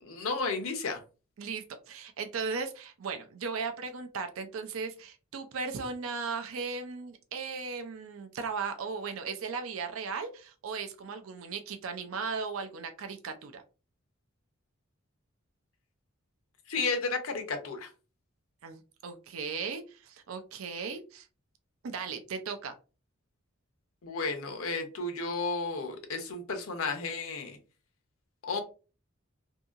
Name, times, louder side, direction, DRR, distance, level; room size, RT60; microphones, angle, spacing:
voice 1, 0.0-1.0 16.7-17.9 24.0-27.6 28.4-28.6, left 4 dB, 90° left, 5 dB, 0.7 m, -33 dB
voice 2, 1.4-13.6 18.6-21.3 21.8-22.7, right 5 dB, 80° right, 6 dB, 0.5 m, -37 dB
2.7 x 2.7 x 2.4 m, 0.34 s
head